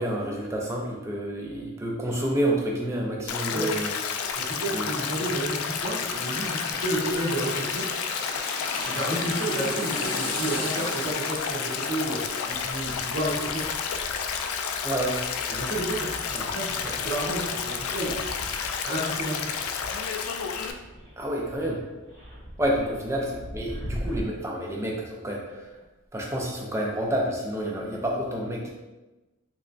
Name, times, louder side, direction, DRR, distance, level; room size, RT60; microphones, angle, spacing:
voice 1, 0.0-3.9 4.7-4.9 14.8-15.2 21.2-21.8 22.6-25.7 26.1-28.7, right 1 dB, 15° right, -1 dB, 0.4 m, -29 dB
Stream, 3.3-20.7, left 6 dB, 85° left, 0.3 m, -31 dB
voice 2, 4.3-7.9 8.8-13.7 15.5-18.2 18.8-19.5 22.8-22.9, right 1 dB, 65° right, -5 dB, 1.1 m, -31 dB
sound 1, 5.1-14.5 14.9-15.0, left 1 dB, 40° left, 0.8 m, -37 dB
sound 2, 12.5-24.2, equal, 40° right, 0.9 m, -42 dB
3.4 x 3.2 x 2.6 m, 1.1 s
head